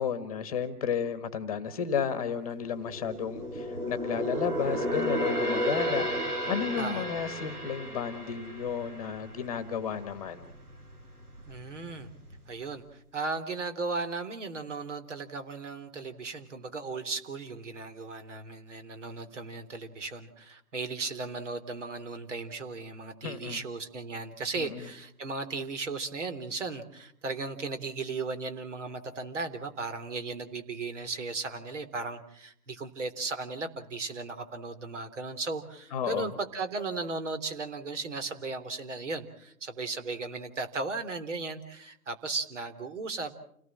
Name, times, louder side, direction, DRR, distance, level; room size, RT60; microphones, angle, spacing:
voice 1, 0.0-10.5 23.2-23.6 24.6-24.9 35.9-36.3, left 7 dB, 25° left, 12 dB, 1.6 m, -33 dB
sound 1, 2.6-10.1 10.5-10.7 11.3-12.0 12.3-12.4, equal, 75° right, 7.9 m, -33 dB
voice 2, 6.8-7.1 11.5-12.1 12.5-43.3, right 3 dB, 50° right, 9 dB, 3.6 m, -36 dB
29.5 x 18.0 x 7.5 m, 0.69 s
figure-of-eight pair, 150°, 45 cm